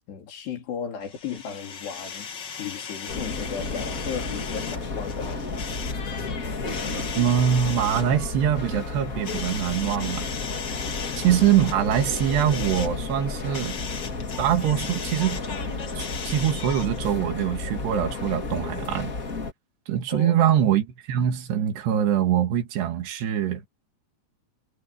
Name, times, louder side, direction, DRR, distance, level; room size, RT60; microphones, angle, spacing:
voice 1, 0.1-2.3 2.6-5.4 20.1-20.5, left 7 dB, 80° left, 5.6 m, -35 dB
sound 1, 1.0-17.0, left 6 dB, 45° left, 1.4 m, -38 dB
sound 2, 3.1-19.5, left 3 dB, 30° left, 1.7 m, -32 dB
voice 2, 7.2-10.3 11.2-13.8 14.4-15.4 16.0-19.1 19.9-23.6, right 10 dB, 80° right, 4.0 m, -23 dB
omnidirectional pair, 4.8 m